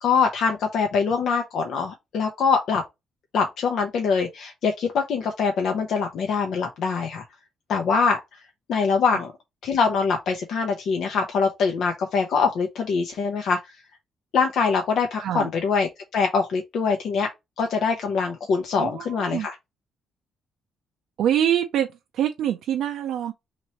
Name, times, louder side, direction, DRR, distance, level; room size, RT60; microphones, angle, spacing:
voice 1, 0.0-2.8 3.3-7.2 7.7-8.4 8.7-9.3 9.6-13.8 14.3-17.3 17.6-19.6, left 5 dB, 70° left, 0.7 m, -23 dB
voice 2, 18.8-19.5 21.2-21.9 22.1-23.3, right 10 dB, 80° right, 0.4 m, -24 dB
2.9 x 2.9 x 4.3 m
cardioid pair, 90°, 0 cm